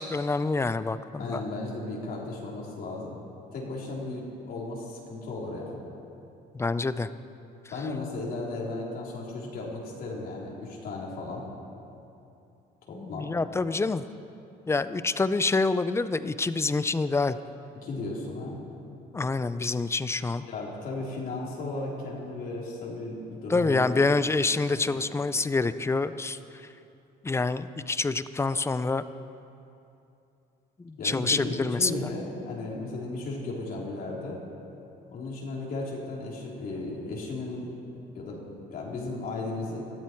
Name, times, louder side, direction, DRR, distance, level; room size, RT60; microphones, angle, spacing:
voice 1, 0.0-1.4 6.5-7.1 12.9-14.0 14.7-17.4 19.1-20.4 23.5-26.7 27.2-29.0 30.8-32.1, left 3 dB, 15° left, 13 dB, 0.5 m, -27 dB
voice 2, 1.2-3.2 3.5-5.8 7.7-11.4 12.9-13.3 17.8-18.6 20.4-24.3 24.7-25.1 31.0-34.4 35.1-37.7 38.2-39.8, left 2 dB, 60° left, -3 dB, 3.8 m, -35 dB
20.5 x 14.0 x 4.6 m, 2.8 s
cardioid pair, 110°, 17 cm